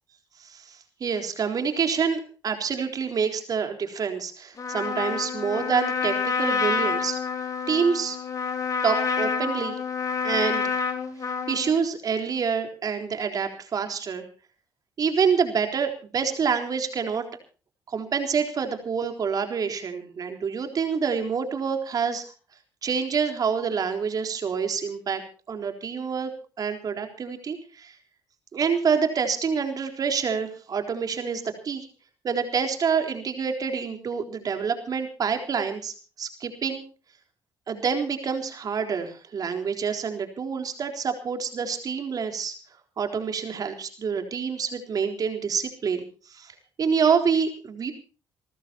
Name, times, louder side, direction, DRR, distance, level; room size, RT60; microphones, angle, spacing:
voice 1, 0.4-7.2 7.7-8.2 8.8-9.8 10.2-10.8 11.5-14.3 15.0-17.2 17.9-22.2 22.8-25.2 25.5-26.3 26.6-28.0 28.5-31.9 32.2-36.8 37.7-42.5 43.0-47.9, right 6 dB, 50° right, 6 dB, 3.9 m, -27 dB
Trumpet, 4.6-11.7, left 5 dB, 45° left, 4.5 m, -28 dB
29.0 x 14.0 x 2.9 m, 0.36 s
supercardioid pair, 75°, 8 cm